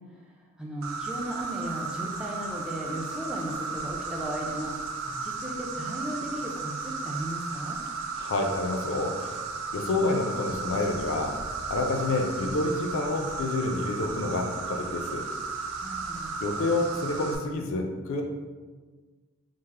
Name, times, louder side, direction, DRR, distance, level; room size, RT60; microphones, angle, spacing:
voice 1, 0.6-4.8 5.1-7.8 15.8-16.4, equal, 5° right, -3 dB, 0.3 m, -36 dB
Insect, 0.8-17.4, right 4 dB, 85° right, 0.4 m, -35 dB
voice 2, 8.1-9.3 9.7-11.4 11.7-15.3 16.4-18.2, left 2 dB, 65° left, 3 dB, 0.4 m, -28 dB
3.4 x 2.0 x 3.2 m, 1.4 s
head